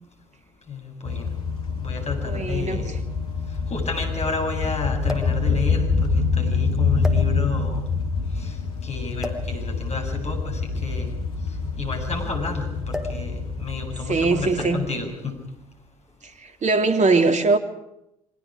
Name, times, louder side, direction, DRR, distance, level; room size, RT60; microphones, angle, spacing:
voice 1, 0.7-1.3 1.8-3.0 3.7-7.9 8.3-11.1 11.5-15.4, left 4 dB, 35° left, 4 dB, 7.8 m, -31 dB
sound 1, 1.1-14.9, left 4 dB, 85° left, 2.3 m, -26 dB
sound 2, 1.3-1.4 2.5-2.6 2.9-3.0 5.0-5.4 6.3-6.5 7.0-7.7 9.2-9.5 10.7-12.3 12.9-13.3 13.5-13.8 14.6-15.0 15.9-16.2, left 1 dB, 5° right, 4.2 m, -35 dB
voice 2, 2.3-3.0 14.1-14.9 16.2-17.6, right 3 dB, 40° right, 7 dB, 3.4 m, -21 dB
30.0 x 25.0 x 5.0 m, 0.83 s
figure-of-eight pair, 50°, 18 cm